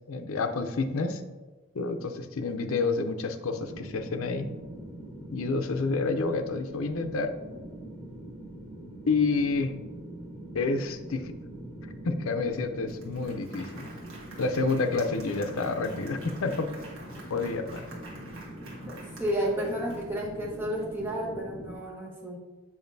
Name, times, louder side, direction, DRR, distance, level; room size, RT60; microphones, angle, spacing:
voice 1, 0.1-1.2 1.7-4.5 5.3-7.3 9.1-9.7 10.5-11.2 12.0-13.9 14.4-16.7 17.3-17.8, left 3 dB, 75° left, 7 dB, 0.5 m, -29 dB
sound 1, 3.5-21.7, right 1 dB, 20° left, 2.0 m, -43 dB
Applause, 12.5-12.6 12.9-20.4, right 2 dB, 80° right, 1.4 m, -48 dB
voice 2, 19.2-22.4, equal, 10° right, -4 dB, 1.1 m, -31 dB
7.0 x 5.4 x 2.7 m, 1.2 s
head